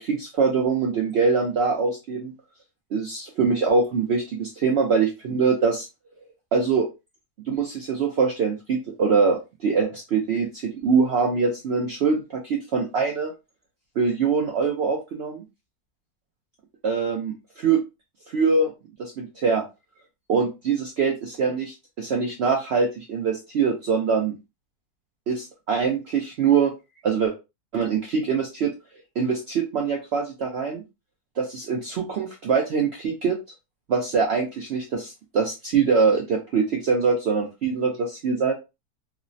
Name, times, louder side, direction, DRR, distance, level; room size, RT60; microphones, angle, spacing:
voice 1, 0.0-2.3 2.9-5.9 6.5-6.9 7.5-13.3 14.0-15.4 16.8-17.8 18.3-18.7 19.0-19.6 20.3-24.3 25.3-26.7 27.0-27.3 27.7-28.7 29.2-30.8 31.4-33.4 33.9-38.5, right 5 dB, 75° right, 1 dB, 0.6 m, -23 dB
3.1 x 2.0 x 2.5 m, 0.26 s
omnidirectional pair, 1.7 m